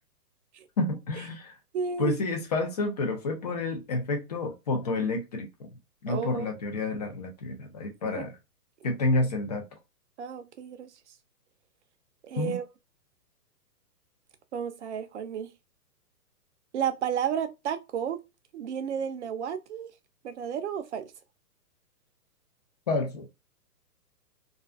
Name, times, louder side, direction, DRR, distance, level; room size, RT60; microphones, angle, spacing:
voice 1, 0.8-1.5 2.0-5.7 6.0-8.3 8.8-9.6 12.4-12.5 22.9-23.2, left 2 dB, 30° left, 0.4 m, -29 dB
voice 2, 1.7-2.2 6.1-6.5 8.2-8.3 10.2-10.9 12.2-12.7 14.5-15.5 16.7-18.2 18.5-19.9 20.2-21.1, right 8 dB, 50° right, 0.5 m, -32 dB
2.4 x 2.2 x 2.4 m
hypercardioid pair, 140°, 48 cm